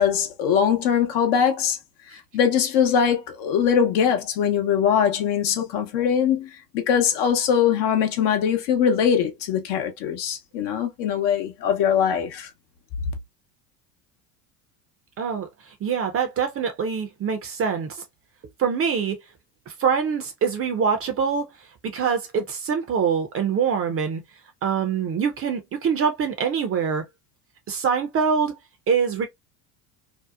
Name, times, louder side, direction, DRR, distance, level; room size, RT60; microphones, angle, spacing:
voice 1, 0.0-1.8 2.3-6.5 6.7-12.5, left 8 dB, 60° left, 0.8 m, -21 dB
voice 2, 15.2-15.5 15.8-18.0 18.6-19.2 19.7-21.5 21.9-24.2 24.6-27.0 27.7-28.5 28.9-29.3, right 6 dB, 30° right, 0.5 m, -24 dB
2.7 x 2.0 x 2.3 m
hypercardioid pair, 85°, 47 cm